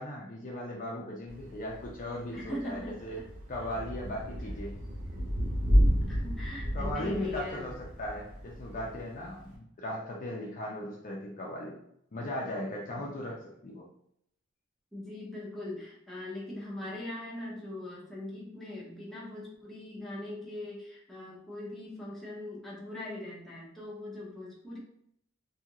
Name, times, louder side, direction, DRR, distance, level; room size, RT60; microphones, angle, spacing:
voice 1, 0.0-3.2 3.5-4.8 6.7-11.7 12.1-13.9, left 1 dB, 40° left, -2 dB, 0.5 m, -38 dB
Thunder / Rain, 1.3-9.5, equal, 70° right, 1.1 m, -31 dB
voice 2, 2.3-3.1 6.1-7.7 13.0-13.1 14.9-24.8, left 1 dB, ahead, -6 dB, 0.8 m, -41 dB
2.7 x 2.4 x 2.9 m, 0.73 s
head